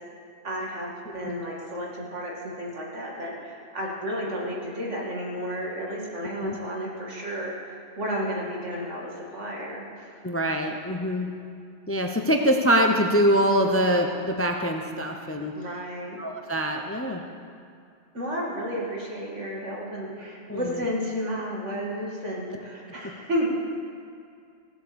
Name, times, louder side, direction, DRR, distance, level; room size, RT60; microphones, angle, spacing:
voice 1, 0.4-10.1 15.6-16.2 18.1-23.5, equal, 75° right, -3 dB, 2.6 m, -32 dB
voice 2, 10.2-11.3 11.9-15.5 16.2-17.2 20.5-20.8, equal, 15° left, 3 dB, 0.6 m, -24 dB
15.5 x 8.0 x 7.0 m, 2.4 s
omnidirectional pair, 1.3 m